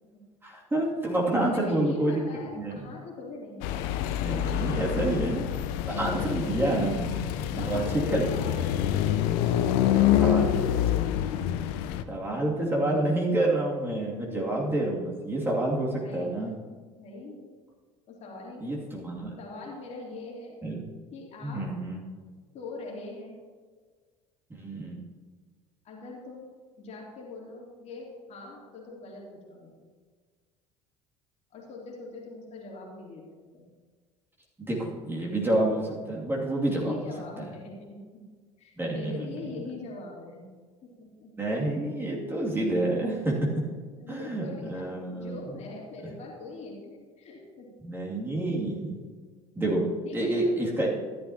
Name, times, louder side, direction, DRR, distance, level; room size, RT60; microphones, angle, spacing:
voice 1, 0.4-2.2 2.6-2.8 4.2-5.5 5.9-7.2 7.5-7.8 8.1-8.2 9.9-10.5 12.1-16.5 18.6-19.3 20.6-20.8 21.4-22.0 24.6-25.0 34.6-36.9 38.8-39.3 41.4-43.4 44.1-45.3 47.8-48.9 49.6-49.8 50.1-50.9, right 1 dB, 15° right, -3 dB, 2.5 m, -28 dB
voice 2, 1.4-5.0 5.9-11.3 11.8-12.4 15.7-16.5 17.0-17.5 18.1-18.9 19.4-20.6 21.1-21.6 22.5-23.4 25.8-26.5 26.8-29.8 31.5-33.2 33.5-33.6 36.7-38.2 38.6-40.5 40.8-41.3 43.5-43.6 44.0-47.7 50.0-50.9, left 3 dB, 45° left, -3 dB, 3.1 m, -42 dB
sound 1, 3.6-12.0, left 11 dB, 60° left, 0.7 m, -26 dB
13.5 x 11.5 x 2.9 m, 1.5 s
figure-of-eight pair, 65°, 16 cm